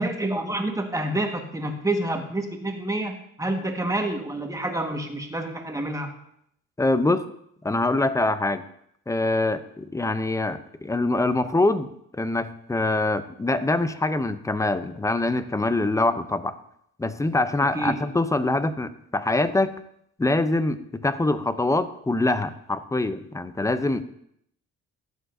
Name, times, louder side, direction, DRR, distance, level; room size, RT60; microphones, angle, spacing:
voice 1, 0.0-6.1 17.7-18.1, right 1 dB, 10° right, 3 dB, 1.4 m, -28 dB
voice 2, 6.8-7.3 7.6-8.6 9.1-16.5 17.0-19.7 20.2-24.0, left 2 dB, 10° left, 12 dB, 0.5 m, -24 dB
12.5 x 7.8 x 2.6 m, 0.71 s
cardioid pair, 90°, 30 cm